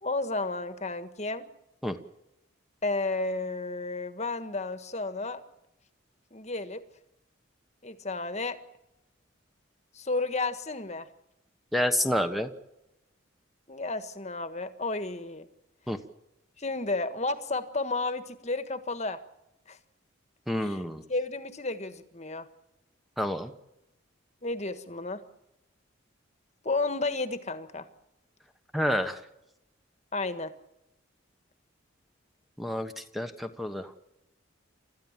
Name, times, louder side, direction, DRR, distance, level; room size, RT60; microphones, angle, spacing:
voice 1, 0.0-1.5 2.8-5.4 6.3-6.9 7.8-8.6 9.9-11.1 13.7-15.5 16.6-19.2 19.7-19.8 20.6-20.8 21.1-22.5 24.4-25.2 26.6-27.9 30.1-30.5, left 3 dB, 35° left, 10 dB, 1.5 m, -32 dB
voice 2, 11.7-12.5 15.9-16.0 20.5-21.0 23.2-23.5 28.7-29.2 32.6-33.9, equal, ahead, 7 dB, 1.2 m, -29 dB
29.5 x 14.0 x 7.4 m, 0.88 s
head